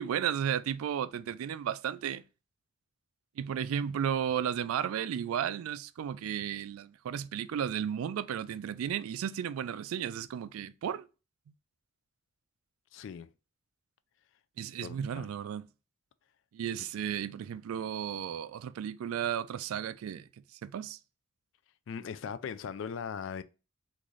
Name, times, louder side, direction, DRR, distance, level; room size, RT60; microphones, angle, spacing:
voice 1, 0.0-2.2 3.4-11.1 14.6-15.6 16.5-20.2 20.6-21.0, right 9 dB, 85° right, 0.3 m, -34 dB
voice 2, 12.9-13.3 14.8-15.3 21.9-23.4, left 6 dB, 60° left, 0.3 m, -39 dB
3.1 x 2.5 x 3.7 m
head